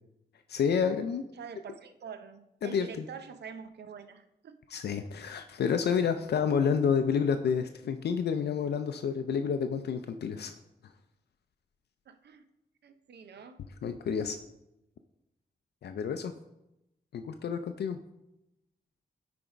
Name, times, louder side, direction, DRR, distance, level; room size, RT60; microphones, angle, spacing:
voice 1, 0.5-1.2 2.6-3.0 4.7-10.6 13.8-14.4 15.8-16.3 17.1-18.0, left 6 dB, 75° left, 8 dB, 0.4 m, -29 dB
voice 2, 1.3-4.9 12.1-12.4 12.8-13.6, right 6 dB, 80° right, 10 dB, 0.6 m, -46 dB
8.8 x 3.4 x 5.0 m, 0.89 s
cardioid pair, 85°, 17 cm